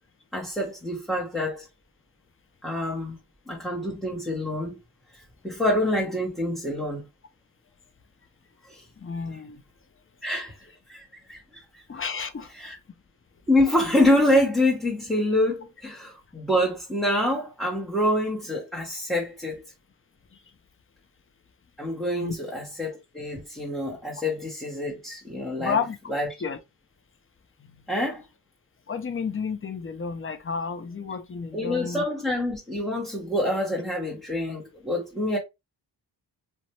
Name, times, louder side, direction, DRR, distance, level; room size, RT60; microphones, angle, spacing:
voice 1, 0.3-1.7 2.6-3.2 3.5-4.8 5.4-7.0 8.7-8.8 10.2-10.5 10.9-11.6 12.6-12.8 13.5-19.6 21.8-25.8 26.1-26.3 27.9-28.2 31.5-35.4, left 1 dB, ahead, 1.0 m, -26 dB
voice 2, 9.0-9.6 11.9-12.5 22.1-22.4 25.6-26.0 26.4-26.6 27.6-27.8 28.9-32.0, left 5 dB, 30° left, 0.6 m, -31 dB
2.5 x 2.2 x 2.9 m
supercardioid pair, 45°, 44 cm